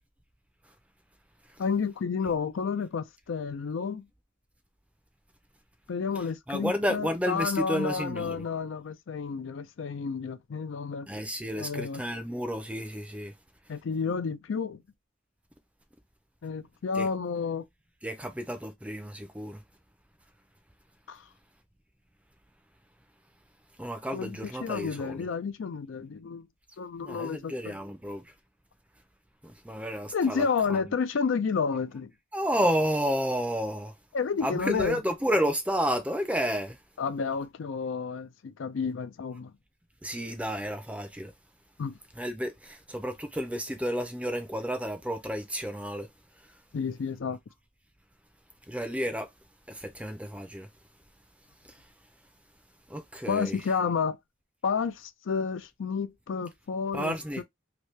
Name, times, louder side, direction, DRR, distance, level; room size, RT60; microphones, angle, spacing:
voice 1, 1.6-4.1 5.9-11.1 11.6-12.0 13.7-14.8 16.4-17.6 21.1-21.3 24.1-26.5 26.8-27.8 30.1-32.1 34.1-35.0 37.0-39.5 41.8-41.9 46.7-47.4 53.3-54.2 54.6-57.4, left 5 dB, 65° left, 0.4 m, -31 dB
voice 2, 6.5-8.4 11.1-13.3 17.0-17.1 18.0-19.6 23.8-25.3 27.0-28.2 29.4-30.9 32.3-33.9 34.4-36.8 40.0-41.3 42.2-46.1 48.7-49.3 49.7-50.7 52.9-53.6 56.9-57.4, equal, 5° right, 0.5 m, -31 dB
3.0 x 2.7 x 3.2 m
head